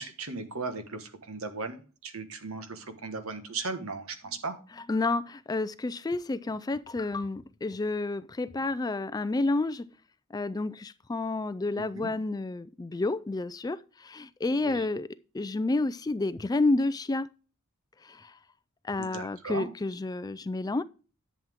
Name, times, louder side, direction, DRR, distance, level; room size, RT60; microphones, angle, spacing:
voice 1, 0.0-4.6 11.7-12.1 14.5-14.9 19.0-19.7, right 3 dB, 75° right, 1.4 m, -37 dB
voice 2, 4.9-9.9 10.3-15.1 15.3-17.3 18.0-18.3 18.8-20.8, left 2 dB, 20° left, 0.3 m, -30 dB
11.0 x 7.3 x 3.6 m
head